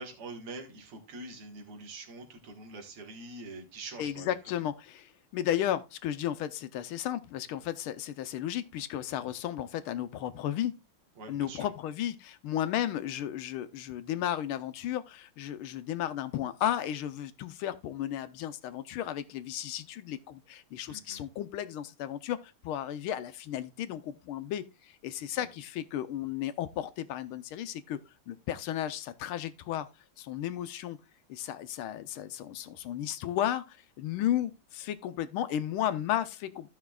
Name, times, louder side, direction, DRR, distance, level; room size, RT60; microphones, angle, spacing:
voice 1, 0.0-4.3 4.6-4.7 11.2-11.7 20.9-21.3 25.3-25.5, right 2 dB, 80° right, 2.6 m, -44 dB
voice 2, 4.0-10.7 11.3-22.4 22.6-28.0 28.3-29.9 30.2-31.0 31.3-36.7, left 11 dB, 80° left, 1.5 m, -34 dB
15.0 x 5.6 x 2.3 m
omnidirectional pair, 2.4 m